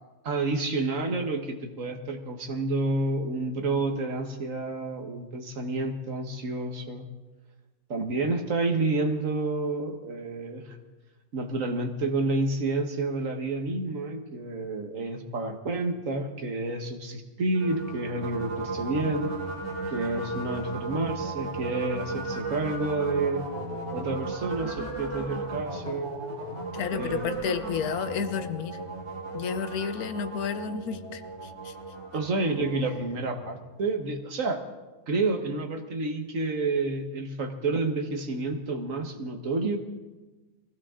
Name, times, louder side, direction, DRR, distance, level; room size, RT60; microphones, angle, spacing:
voice 1, 0.2-7.1 7.9-10.8 11.3-19.3 19.9-23.4 23.9-26.1 26.9-27.8 32.1-34.6 35.1-39.8, right 2 dB, 60° right, 5 dB, 1.7 m, -29 dB
sound 1, 17.5-33.8, right 3 dB, 85° right, 4.1 m, -35 dB
voice 2, 26.7-28.8 29.3-31.7, left 6 dB, 80° left, 11 dB, 1.3 m, -31 dB
22.0 x 16.0 x 3.7 m, 1.2 s
omnidirectional pair, 1.6 m